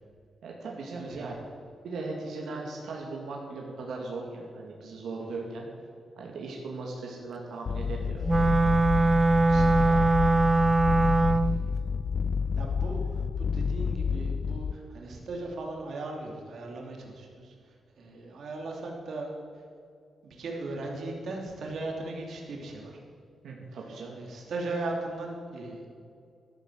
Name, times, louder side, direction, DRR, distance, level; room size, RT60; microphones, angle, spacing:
voice 1, 0.4-1.4 1.8-5.7 6.2-8.3 9.4-10.0 23.4-24.2, right 3 dB, 85° right, -1 dB, 2.5 m, -38 dB
voice 2, 1.0-1.3 9.4-10.0 12.6-19.6 20.2-23.0 24.1-25.9, right 2 dB, 65° right, 0 dB, 3.0 m, -38 dB
sound 1, 7.7-14.7, left 6 dB, 50° left, 0.4 m, -29 dB
Wind instrument woodwind instrument, 8.2-11.6, right 3 dB, 15° right, 0.4 m, -22 dB
13.0 x 12.0 x 7.6 m, 2.3 s
wide cardioid pair, 150°, 0 cm